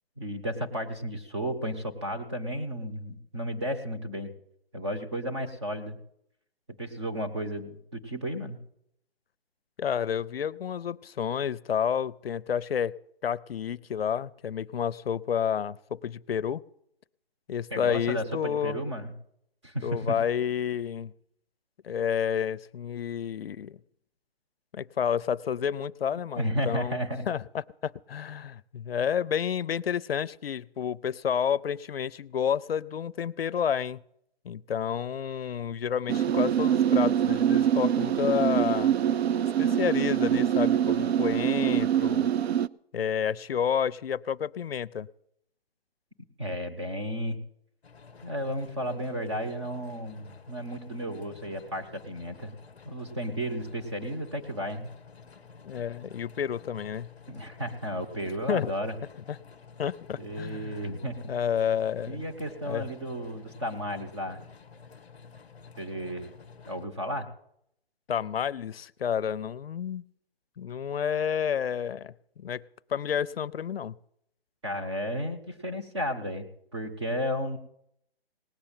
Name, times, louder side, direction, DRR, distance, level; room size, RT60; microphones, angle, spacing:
voice 1, 0.2-4.3 4.7-6.0 6.8-8.6 17.7-19.1 19.6-20.1 26.3-27.2 46.4-47.4 48.2-52.5 52.8-54.9 57.3-58.9 60.2-61.3 62.1-64.4 65.8-66.3 66.7-67.3 74.6-77.6, equal, 30° right, 3 dB, 1.1 m, -33 dB
voice 2, 9.8-12.9 13.2-16.6 17.5-18.8 19.8-21.1 21.8-23.8 24.7-27.0 27.3-34.0 34.5-38.9 39.6-42.3 42.9-45.1 55.6-57.1 58.5-58.7 59.3-59.4 59.8-60.8 61.3-62.2 62.7-62.8 68.1-70.0 70.6-72.6 72.9-73.9, left 8 dB, 70° left, 18 dB, 0.5 m, -30 dB
sound 1, 36.1-42.7, right 9 dB, 90° right, 0.5 m, -24 dB
sound 2, 47.8-66.8, left 5 dB, 5° left, 0.7 m, -51 dB
18.0 x 6.8 x 8.8 m, 0.74 s
hypercardioid pair, 180°, 31 cm